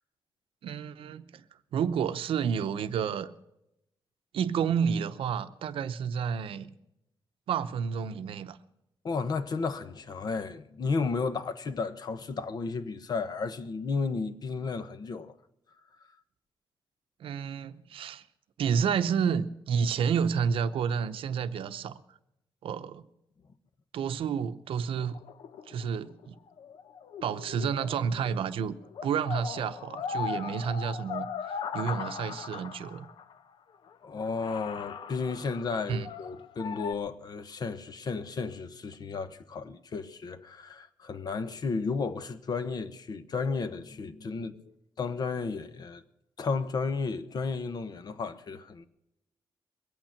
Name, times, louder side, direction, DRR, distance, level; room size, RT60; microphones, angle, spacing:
voice 1, 0.6-1.4 1.7-3.3 4.3-6.8 7.5-8.6 17.2-18.2 18.6-22.0 22.6-23.1 23.9-25.2 25.7-26.4 27.2-28.8 29.0-33.1 35.9-36.1, right 7 dB, 85° right, 0.8 m, -30 dB
voice 2, 9.0-15.3 34.0-46.0 46.4-48.8, left 4 dB, 50° left, 1.1 m, -33 dB
sound 1, 25.0-28.6 28.8-33.3 33.9-34.0 34.2-36.9, left 7 dB, 65° left, 0.7 m, -39 dB
22.0 x 8.9 x 5.9 m
wide cardioid pair, 140°, 9 cm